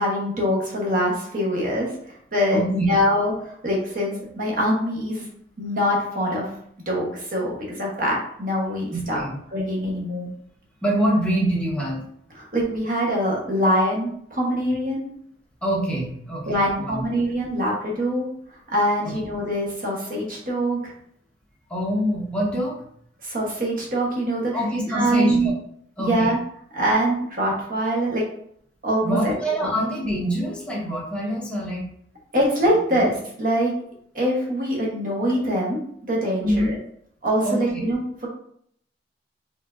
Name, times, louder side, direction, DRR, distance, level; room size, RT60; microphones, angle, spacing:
voice 1, 0.0-5.3 5.6-6.5 6.9-9.2 9.5-10.3 12.3-15.1 16.5-18.3 18.7-20.9 23.2-24.5 24.9-25.5 26.0-26.4 26.7-28.2 28.8-29.3 29.6-29.8 32.3-33.7 34.1-35.8 36.1-36.8 37.2-38.3, equal, 50° right, -3 dB, 1.2 m, -24 dB
voice 2, 2.5-2.9 8.9-9.4 10.8-12.0 15.6-17.0 19.0-19.2 21.7-22.8 24.5-25.5 26.0-26.3 29.0-31.8 36.4-36.7 37.4-37.6, equal, 5° left, -5 dB, 1.1 m, -25 dB
4.4 x 3.7 x 2.6 m, 0.66 s
head